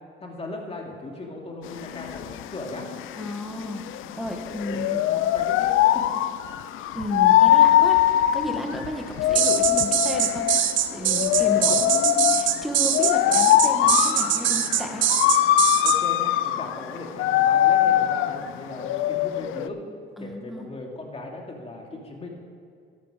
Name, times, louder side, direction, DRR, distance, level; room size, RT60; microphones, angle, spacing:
voice 1, 0.2-2.9 4.5-6.0 9.0-9.1 11.4-11.8 15.1-15.2 15.8-19.8 20.2-22.3, left 2 dB, 30° left, 0 dB, 2.6 m, -38 dB
sound 1, 1.7-19.7, left 12 dB, 85° left, 0.5 m, -22 dB
voice 2, 3.2-3.8 4.2-5.0 6.9-8.0 8.3-10.5 10.9-15.1 20.2-20.7, equal, ahead, 2 dB, 1.6 m, -32 dB
sound 2, 9.3-16.0, right 10 dB, 75° right, 0.9 m, -23 dB
13.5 x 11.0 x 5.1 m, 2.3 s
cardioid pair, 90°, 20 cm